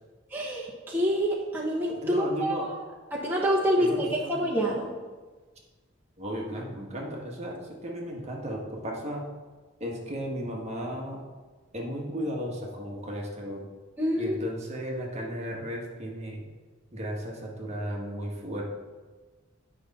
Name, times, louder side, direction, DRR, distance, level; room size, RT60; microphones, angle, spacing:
voice 1, 0.3-2.8 3.1-4.9 14.0-14.4, equal, 10° right, -5 dB, 1.0 m, -27 dB
voice 2, 2.0-2.7 3.8-4.5 6.2-9.2 9.8-11.2 11.7-13.7 14.2-16.4 16.9-18.6, equal, 35° right, -1 dB, 1.4 m, -35 dB
9.8 x 5.4 x 4.1 m, 1.3 s
head